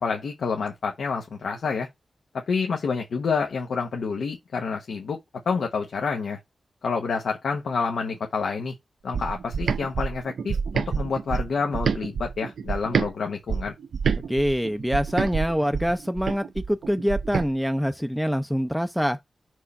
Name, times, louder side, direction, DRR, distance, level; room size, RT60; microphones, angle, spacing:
voice 1, 0.0-1.9 2.5-5.2 5.5-6.4 6.8-8.7 9.0-13.7, left 5 dB, 90° left, 0.9 m, -28 dB
sound 1, 9.1-13.1 13.5-17.5, right 6 dB, 80° right, 0.4 m, -28 dB
voice 2, 14.3-19.2, equal, ahead, 0.4 m, -25 dB
5.4 x 4.6 x 4.2 m
wide cardioid pair, 100°, 0 cm